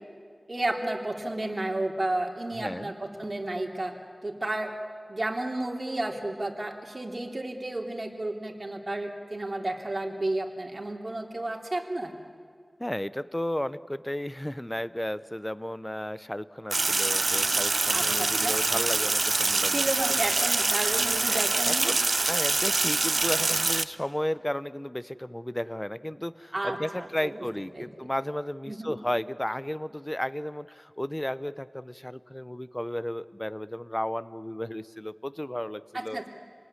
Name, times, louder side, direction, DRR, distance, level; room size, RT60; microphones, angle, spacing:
voice 1, 0.5-3.9 4.2-4.7 5.1-12.1 17.9-18.6 19.7-21.9 26.5-27.4 27.8-27.9 28.7-28.9 35.9-36.3, right 1 dB, 45° right, 2 dB, 3.2 m, -32 dB
voice 2, 2.5-2.9 12.8-19.9 21.3-36.2, left 1 dB, 15° left, 15 dB, 0.7 m, -34 dB
Sink (filling or washing), 16.7-23.8, right 3 dB, 75° right, 0.7 m, -25 dB
27.5 x 19.5 x 9.8 m, 2.1 s
wide cardioid pair, 60°, 0 cm